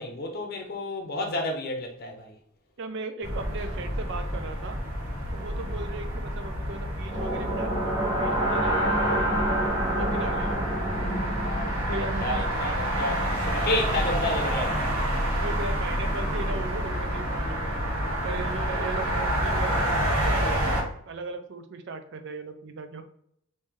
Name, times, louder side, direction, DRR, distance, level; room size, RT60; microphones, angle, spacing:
voice 1, 0.0-2.4 11.1-14.7, left 2 dB, 45° left, 0.7 m, -31 dB
voice 2, 2.8-4.8 5.3-8.8 9.1-9.5 9.9-10.9 11.8-12.5 15.4-17.8 18.2-23.0, right 3 dB, 55° right, 0.5 m, -37 dB
sound 1, 3.2-20.8, equal, 85° right, 1.4 m, -28 dB
sound 2, 7.1-15.1, right 1 dB, 20° right, 0.9 m, -29 dB
3.1 x 2.7 x 3.6 m
head